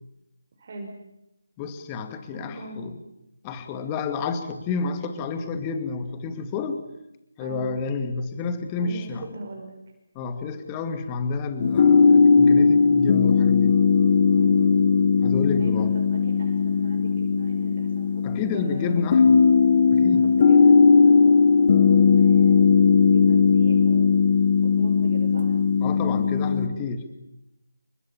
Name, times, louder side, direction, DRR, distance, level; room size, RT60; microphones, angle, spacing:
voice 1, 0.6-0.9 2.3-2.8 7.4-7.7 8.8-9.8 14.3-14.9 15.6-18.2 18.5-18.9 20.1-24.1 24.6-25.6, right 1 dB, 40° right, 2 dB, 5.6 m, -39 dB
voice 2, 1.6-2.9 3.4-6.9 7.4-9.2 10.1-13.8 15.2-15.9 18.2-19.4 19.9-20.3 25.8-27.1, left 4 dB, 15° left, 8 dB, 2.4 m, -29 dB
sound 1, 11.6-26.7, left 5 dB, 35° left, 2.0 m, -18 dB
29.5 x 24.0 x 7.4 m, 0.88 s
figure-of-eight pair, 155°, 0 cm